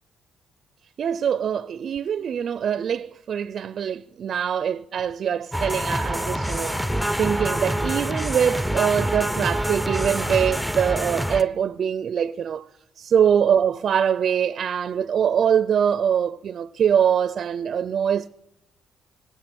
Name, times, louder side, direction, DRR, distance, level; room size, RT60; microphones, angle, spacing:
voice 1, 1.0-6.8 7.2-12.7 13.0-18.3, right 8 dB, 60° right, 0.4 m, -23 dB
sound 1, 5.5-11.4, equal, ahead, 0.6 m, -26 dB
18.0 x 8.3 x 7.8 m
cardioid pair, 90°, 0 cm